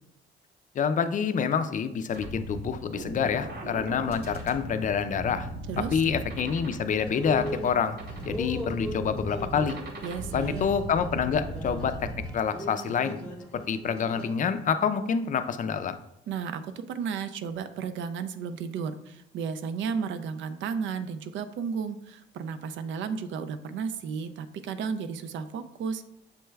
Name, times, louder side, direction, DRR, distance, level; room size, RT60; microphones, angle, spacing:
voice 1, 0.7-5.5 5.9-8.0 8.2-9.8 10.3-12.1 12.3-13.2 13.5-16.0, left 7 dB, 40° left, 10 dB, 0.4 m, -27 dB
sound 1, 2.1-12.3, right 1 dB, 55° right, 0.9 m, -38 dB
voice 2, 5.7-6.0 10.0-10.7 16.3-26.0, right 6 dB, 70° right, 11 dB, 0.4 m, -33 dB
sound 2, 6.9-14.4, equal, 5° left, 0.8 m, -40 dB
6.7 x 2.2 x 3.2 m, 0.80 s
cardioid pair, 90°, 20 cm